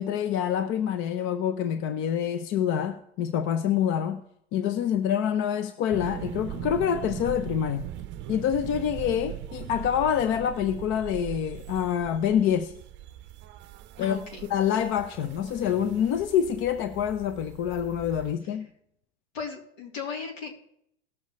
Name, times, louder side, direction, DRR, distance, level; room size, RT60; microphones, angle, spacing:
voice 1, 0.0-4.2 4.5-7.9 8.3-12.7 14.0-14.2 14.5-18.7, left 9 dB, 40° left, 0.7 m, -26 dB
W-class tram Melbourne, 5.9-18.3, right 12 dB, 35° right, 0.7 m, -40 dB
voice 2, 14.0-14.5 19.3-20.7, left 5 dB, 70° left, 3.2 m, -36 dB
19.0 x 7.2 x 3.1 m
hypercardioid pair, 110°, 32 cm